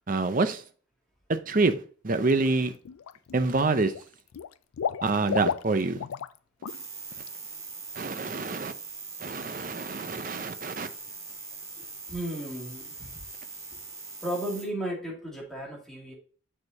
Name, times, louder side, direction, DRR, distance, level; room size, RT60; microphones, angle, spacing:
voice 1, 0.1-0.6 1.3-1.7 2.0-2.7 3.3-3.9 5.0-6.0 8.0-8.7 9.2-10.9, right 3 dB, 40° right, 10 dB, 0.6 m, -26 dB
Water / Liquid, 2.2-2.5 2.8-3.5 3.8-6.4 6.6-6.8 7.2-7.3, left 7 dB, 90° left, 0.4 m, -33 dB
sound 1, 6.7-14.6, right 4 dB, 15° right, 2.0 m, -42 dB
voice 2, 12.1-13.2 14.2-16.1, right 1 dB, ahead, -4 dB, 2.5 m, -34 dB
6.6 x 6.6 x 2.8 m, 0.41 s
head